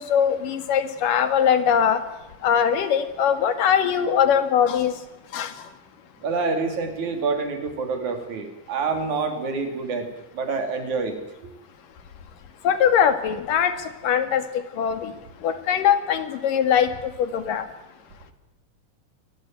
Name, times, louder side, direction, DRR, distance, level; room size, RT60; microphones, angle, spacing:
voice 1, 0.0-2.0 2.4-4.9 5.3-5.5 12.6-13.7 14.0-14.4 14.8-15.1 15.4-16.9 17.2-17.7, left 8 dB, 80° left, 10 dB, 3.5 m, -21 dB
voice 2, 6.2-10.1 10.3-11.2, right 4 dB, 65° right, 6 dB, 4.3 m, -27 dB
23.5 x 20.0 x 9.1 m, 0.98 s
omnidirectional pair, 3.7 m